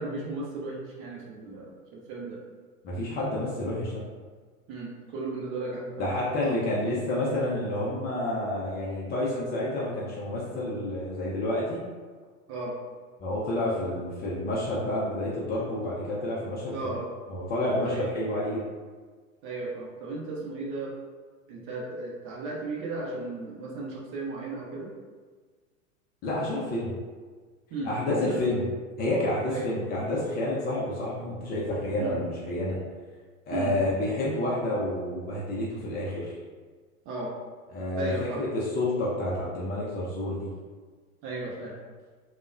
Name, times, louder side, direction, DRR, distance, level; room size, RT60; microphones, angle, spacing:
voice 1, 0.0-2.4 4.7-6.1 6.4-6.5 12.5-12.7 16.7-17.1 17.8-18.0 19.4-20.9 21.5-24.9 27.7-28.6 29.5-29.7 32.0-32.2 33.5-33.7 37.1-37.3 38.0-38.4 41.2-41.7, right 3 dB, 30° right, -3 dB, 0.6 m, -35 dB
voice 2, 2.8-4.0 6.0-11.8 13.2-17.0 17.3-18.6 26.2-26.9 27.8-28.6 29.0-32.8 33.5-36.3 37.7-40.5, left 1 dB, 25° left, -6 dB, 0.5 m, -29 dB
3.3 x 2.1 x 2.5 m, 1.5 s
figure-of-eight pair, 95°, 42 cm